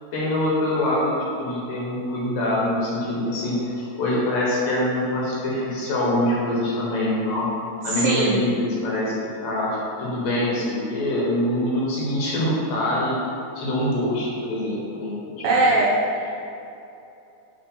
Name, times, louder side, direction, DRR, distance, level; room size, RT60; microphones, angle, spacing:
voice 1, 0.1-7.5 7.8-9.1 9.4-9.7 10.0-13.2 13.6-15.3, left 1 dB, 70° left, -6 dB, 3.2 m, -24 dB
voice 2, 7.9-8.4 15.4-16.3, right 2 dB, 75° right, -7 dB, 2.8 m, -21 dB
9.1 x 3.2 x 5.6 m, 2.7 s
omnidirectional pair, 5.4 m